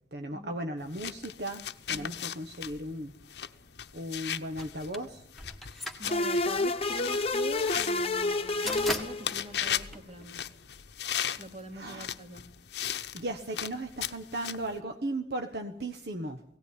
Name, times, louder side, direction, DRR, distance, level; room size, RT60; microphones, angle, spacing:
voice 1, 0.1-3.1 3.9-5.2 11.7-12.1 13.1-16.4, right 1 dB, 65° right, 5 dB, 1.3 m, -36 dB
sound 1, 0.8-14.8, left 10 dB, 70° left, 0.9 m, -37 dB
sound 2, 4.6-10.7, left 1 dB, ahead, 1.8 m, -40 dB
voice 2, 6.0-10.5 11.4-12.4, right 1 dB, 35° right, 5 dB, 3.0 m, -44 dB
sound 3, 6.1-9.7, left 2 dB, 35° left, 1.0 m, -29 dB
18.0 x 17.5 x 9.8 m, 0.67 s
head